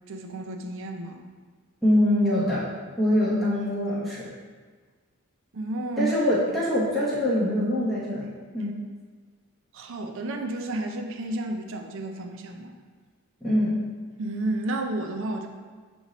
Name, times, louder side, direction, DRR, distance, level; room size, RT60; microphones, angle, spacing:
voice 1, 0.1-1.2 5.5-6.1 9.7-12.8 14.2-15.5, right 1 dB, 60° right, 4 dB, 0.5 m, -31 dB
voice 2, 1.8-2.7 3.0-4.3 6.0-8.8 13.4-13.8, left 1 dB, ahead, -9 dB, 0.8 m, -24 dB
6.7 x 2.6 x 3.0 m, 1.5 s
head